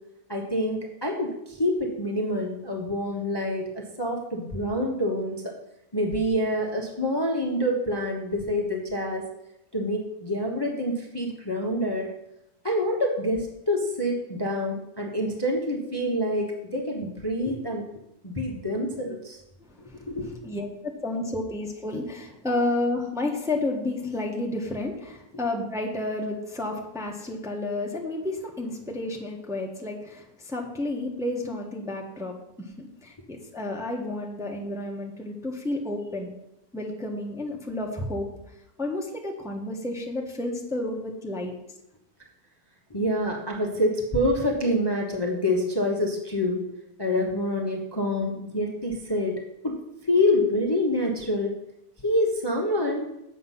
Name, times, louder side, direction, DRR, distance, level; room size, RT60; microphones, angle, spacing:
voice 1, 0.3-5.5 5.9-9.3 9.7-12.1 12.6-17.8 18.2-19.4 20.0-20.3 42.9-46.7 47.0-49.8 50.1-51.5 52.0-53.1, left 1 dB, 20° left, -1 dB, 1.0 m, -26 dB
voice 2, 19.6-36.3 36.7-38.3 38.8-41.5, left 2 dB, ahead, 0 dB, 1.1 m, -31 dB
7.9 x 7.3 x 5.6 m, 0.84 s
omnidirectional pair, 1.6 m